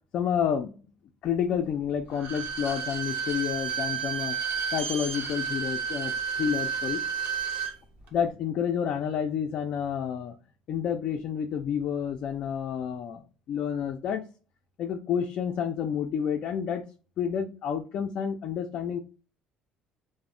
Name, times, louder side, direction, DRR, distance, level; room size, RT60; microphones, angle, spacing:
voice 1, 0.1-0.7 1.2-4.4 4.7-7.0 8.1-10.3 10.7-14.2 14.8-16.8 17.2-19.0, left 8 dB, 50° left, 4 dB, 0.3 m, -29 dB
Bowed string instrument, 2.1-7.8 8.1-8.2, right 7 dB, 60° right, 0.6 m, -31 dB
2.1 x 2.0 x 3.5 m, 0.35 s
cardioid pair, 135°, 2 cm